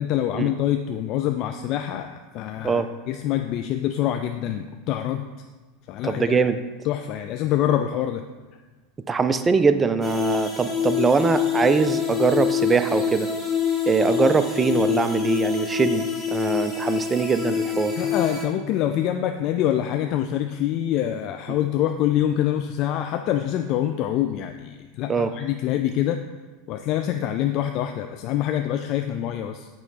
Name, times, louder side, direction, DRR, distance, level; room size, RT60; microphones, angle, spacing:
voice 1, 0.0-5.3 5.9-6.4 6.8-8.2 18.0-26.2 26.7-29.7, left 11 dB, 50° left, 6 dB, 0.3 m, -25 dB
voice 2, 6.0-6.6 9.1-13.3 13.9-16.0 16.3-18.0 25.1-25.3, right 5 dB, 20° right, 11 dB, 0.4 m, -22 dB
sound 1, 10.0-18.4, left 7 dB, 25° left, 1.4 m, -25 dB
8.4 x 3.1 x 3.9 m, 1.3 s
hypercardioid pair, 90°, 0 cm